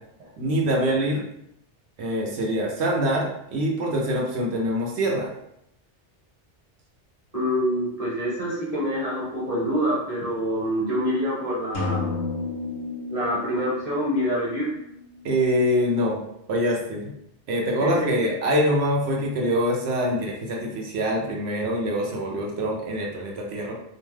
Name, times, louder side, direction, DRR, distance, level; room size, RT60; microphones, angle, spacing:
voice 1, 0.4-1.2 2.0-5.3 15.2-16.2 16.5-17.0 17.5-23.7, equal, 70° right, -1 dB, 0.9 m, -24 dB
voice 2, 7.3-12.1 13.1-14.7 17.8-18.2, equal, 35° right, -6 dB, 1.1 m, -26 dB
sound 1, 11.7-15.5, left 3 dB, 75° left, 0.9 m, -32 dB
2.4 x 2.2 x 3.2 m, 0.76 s
omnidirectional pair, 1.2 m